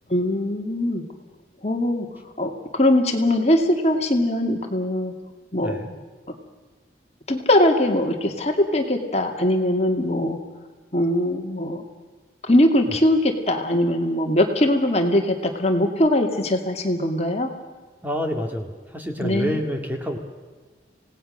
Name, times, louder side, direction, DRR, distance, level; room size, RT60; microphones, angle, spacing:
voice 1, 0.1-1.0 1.6-2.1 2.4-5.1 5.5-5.8 7.3-10.4 10.9-11.8 12.4-17.5 19.2-19.6, left 1 dB, 35° left, 4 dB, 2.3 m, -21 dB
voice 2, 5.6-5.9 12.9-13.0 18.0-20.2, equal, 10° right, 3 dB, 2.0 m, -28 dB
27.5 x 18.0 x 6.6 m, 1.4 s
head